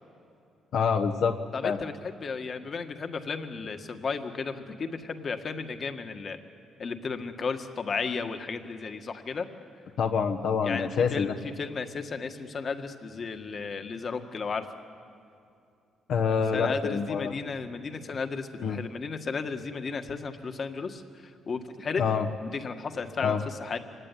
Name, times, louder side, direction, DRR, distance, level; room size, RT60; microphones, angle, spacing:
voice 1, 0.7-1.3 1.6-1.8 10.0-11.3 16.1-17.3 18.6-18.8 22.0-22.3 23.2-23.4, left 6 dB, 70° left, 4 dB, 1.3 m, -26 dB
voice 2, 1.5-6.4 6.8-9.5 10.6-14.7 16.5-22.0 22.4-23.8, left 5 dB, 45° left, 7 dB, 1.7 m, -34 dB
25.0 x 17.5 x 9.9 m, 2.6 s
cardioid pair, 90°, 0 cm